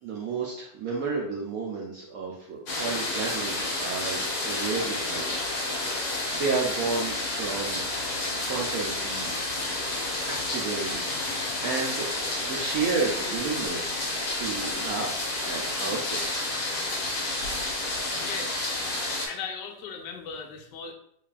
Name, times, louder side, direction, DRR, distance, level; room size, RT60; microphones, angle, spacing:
voice 1, 0.0-5.4 6.1-7.9 8.3-9.3 10.3-14.0 14.4-16.5, right 4 dB, 65° right, -2 dB, 0.9 m, -32 dB
sound 1, 2.7-19.3, left 2 dB, 55° left, 1.2 m, -30 dB
voice 2, 18.2-18.8 19.3-20.9, left 6 dB, 75° left, 4 dB, 1.2 m, -38 dB
4.1 x 3.2 x 2.3 m, 0.67 s
omnidirectional pair, 2.0 m